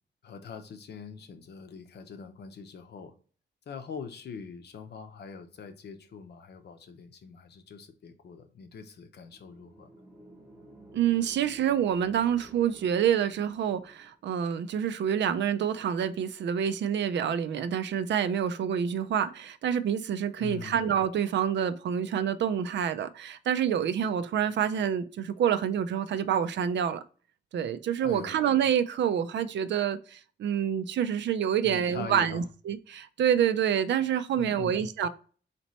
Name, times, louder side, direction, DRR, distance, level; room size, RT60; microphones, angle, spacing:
voice 1, 0.2-3.1 3.7-10.0 20.4-20.8 28.0-28.4 31.6-32.5 34.4-34.9, left 6 dB, 65° left, 0.7 m, -43 dB
sound 1, 9.2-14.2, right 1 dB, 10° right, 0.9 m, -53 dB
voice 2, 10.9-27.0 27.5-35.1, right 9 dB, 75° right, 0.4 m, -27 dB
4.2 x 2.9 x 3.0 m
wide cardioid pair, 140°, 18 cm